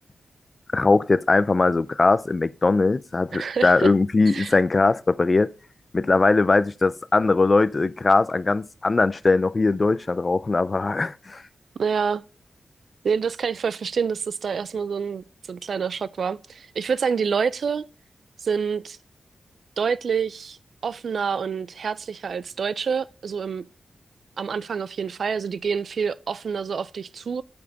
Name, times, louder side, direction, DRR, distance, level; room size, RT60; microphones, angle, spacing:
voice 1, 0.7-5.5 5.9-11.4, left 3 dB, 30° left, 0.4 m, -20 dB
voice 2, 3.3-3.9 4.3-4.5 11.8-12.2 13.0-17.8 18.4-19.0 19.8-23.6 24.4-27.4, right 6 dB, 70° right, 0.4 m, -27 dB
8.6 x 7.0 x 4.0 m
wide cardioid pair, 140°, 0 cm